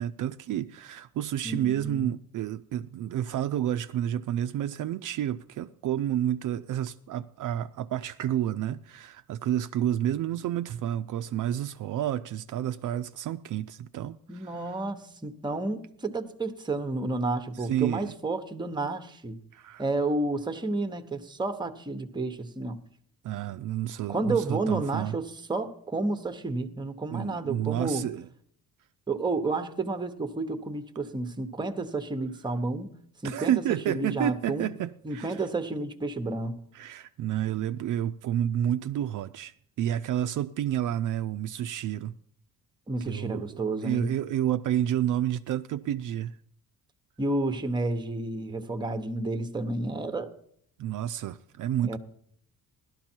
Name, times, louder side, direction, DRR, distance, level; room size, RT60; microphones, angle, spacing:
voice 1, 0.0-14.8 17.6-18.1 19.5-19.8 23.2-25.2 27.1-28.3 33.2-35.4 36.7-42.1 43.1-46.4 50.8-52.0, right 11 dB, 60° right, 0.5 m, -30 dB
voice 2, 1.4-2.1 14.3-19.4 19.8-22.8 24.1-28.1 29.1-32.9 33.2-34.8 35.0-36.6 42.9-44.1 47.2-50.3 51.8-52.0, right 2 dB, 15° right, 0.9 m, -31 dB
16.0 x 12.0 x 4.4 m
cardioid pair, 155°, 34 cm